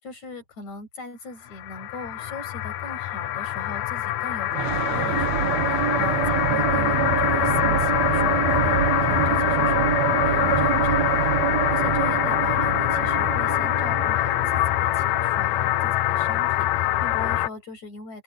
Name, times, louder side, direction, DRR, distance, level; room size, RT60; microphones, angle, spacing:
voice 1, 0.0-9.8 10.2-11.3 11.7-18.2, left 3 dB, 55° left, 8.1 m, -40 dB
sound 1, 1.5-17.5, left 14 dB, 70° left, 1.8 m, -24 dB
sound 2, 4.5-16.3, right 10 dB, 65° right, 2.0 m, -26 dB
open air
omnidirectional pair, 3.9 m